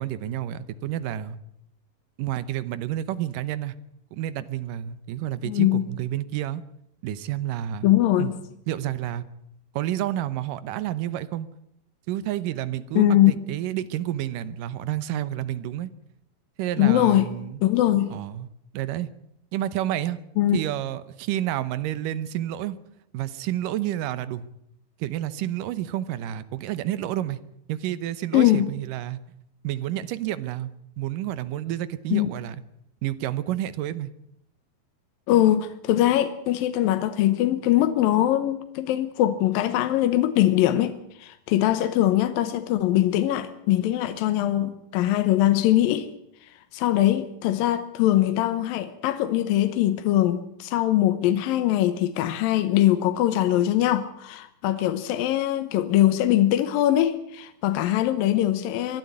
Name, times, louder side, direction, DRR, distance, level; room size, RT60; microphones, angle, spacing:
voice 1, 0.0-1.4 2.2-3.8 4.1-6.6 7.0-7.9 8.2-8.3 8.7-9.2 9.7-11.5 12.1-15.9 16.6-17.6 18.1-18.5 18.7-19.1 19.5-20.2 20.5-22.8 23.1-24.5 25.0-27.4 27.7-29.2 29.6-30.7 31.0-32.6 33.0-34.1, right 12 dB, 75° right, 2.4 m, -29 dB
voice 2, 5.4-5.8 7.8-8.4 13.0-13.3 16.8-17.3 17.6-18.2 20.4-20.6 28.3-28.7 32.1-32.3 35.3-46.1 46.7-59.0, left 13 dB, 80° left, 2.6 m, -22 dB
23.0 x 12.0 x 9.5 m
omnidirectional pair, 4.2 m